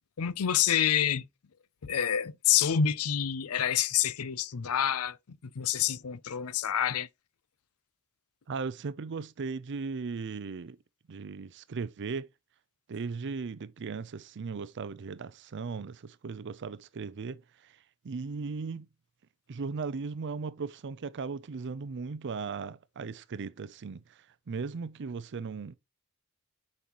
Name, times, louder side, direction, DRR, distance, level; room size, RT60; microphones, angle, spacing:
voice 1, 0.2-1.2 1.8-5.2 5.4-7.1, left 9 dB, 75° left, 0.5 m, -27 dB
voice 2, 8.5-10.8 11.1-12.3 12.9-17.7 18.0-18.9 19.5-25.7, right 4 dB, 55° right, 0.5 m, -37 dB
8.2 x 5.4 x 3.0 m
head